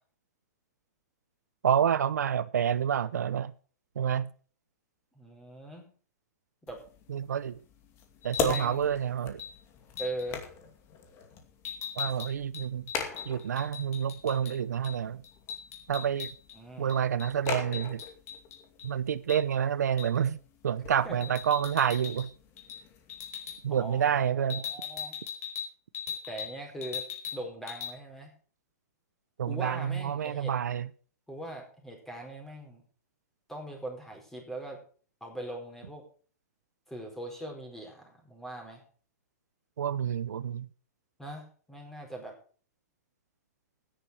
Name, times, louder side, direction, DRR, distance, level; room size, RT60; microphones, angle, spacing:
voice 1, 1.6-3.5 4.0-4.3 7.1-7.5 8.2-9.4 12.0-12.9 13.2-15.2 15.9-16.3 16.8-18.0 18.8-20.4 20.6-22.3 23.6-24.6 29.4-30.9 39.8-40.7, right 8 dB, 90° right, 0.8 m, -28 dB
voice 2, 5.1-5.9 6.7-6.8 8.4-8.9 10.0-10.4 16.5-16.9 21.0-21.3 23.7-25.2 26.3-27.0 27.3-28.3 29.4-30.5 31.3-32.8 33.5-34.8 35.2-36.0 36.9-38.8 41.2-42.4, right 1 dB, 5° left, 4.5 m, -41 dB
sound 1, 6.7-24.3, left 6 dB, 30° left, 2.4 m, -42 dB
sound 2, 8.2-8.7 9.4-9.5 10.0-10.3 11.6-14.5 14.8-15.0 15.2-16.6 16.9-18.9 19.3-19.4 20.0-20.2 21.2-22.3 22.6-22.8 23.1-23.6 24.5-26.5 26.8-27.4 27.7-27.9, left 8 dB, 65° left, 4.6 m, -39 dB
13.5 x 10.5 x 4.8 m
hypercardioid pair, 150°, 9 cm